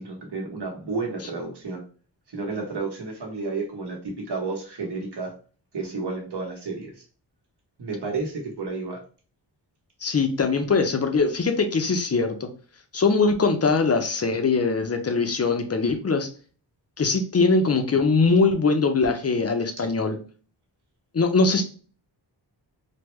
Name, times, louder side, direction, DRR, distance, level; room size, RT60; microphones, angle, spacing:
voice 1, 0.0-1.8 2.3-5.3 5.7-7.0 7.8-9.0, right 3 dB, 65° right, 0 dB, 1.1 m, -31 dB
voice 2, 10.0-12.5 12.9-16.3 17.0-20.2 21.1-21.6, left 4 dB, 35° left, 6 dB, 0.5 m, -22 dB
3.5 x 2.1 x 3.1 m, 0.39 s
wide cardioid pair, 125°, 44 cm